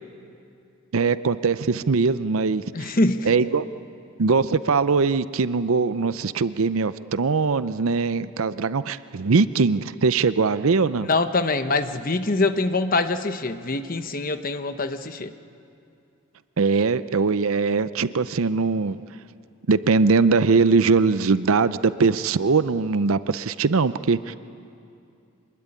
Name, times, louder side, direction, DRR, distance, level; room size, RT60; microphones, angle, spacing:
voice 1, 0.9-2.9 3.3-3.6 4.2-11.1 16.6-19.0 19.7-24.4, right 4 dB, 70° right, 14 dB, 0.6 m, -21 dB
voice 2, 2.7-3.3 11.0-15.3, left 2 dB, 40° left, 9 dB, 1.0 m, -24 dB
25.0 x 21.0 x 9.9 m, 2.6 s
head